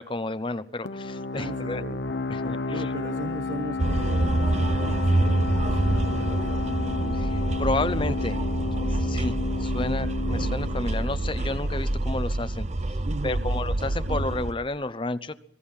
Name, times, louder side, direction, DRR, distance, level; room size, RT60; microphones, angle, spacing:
voice 1, 0.0-1.8 2.3-2.8 7.1-8.4 8.9-12.7 13.2-15.3, left 2 dB, 30° left, 13 dB, 0.9 m, -31 dB
sound 1, 0.9-12.2, left 3 dB, 75° left, 0.9 m, -32 dB
voice 2, 1.3-2.0 2.4-6.7 9.8-10.1 13.0-13.5, right 2 dB, 80° right, 8 dB, 1.1 m, -38 dB
sound 2, 3.8-14.5, right 2 dB, 40° right, 0.8 m, -26 dB
24.0 x 21.0 x 5.7 m, 0.69 s
head